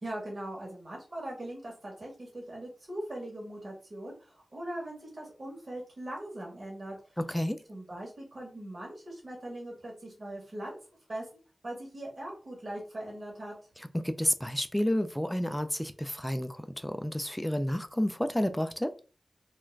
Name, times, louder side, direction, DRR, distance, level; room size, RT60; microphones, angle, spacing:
voice 1, 0.0-7.0 7.7-10.8 11.1-11.2 11.6-13.5, right 1 dB, 55° right, 1.2 m, -40 dB
voice 2, 7.2-7.6 13.9-18.9, equal, 5° left, 0.4 m, -30 dB
2.4 x 2.2 x 3.1 m
cardioid pair, 45°, 0 cm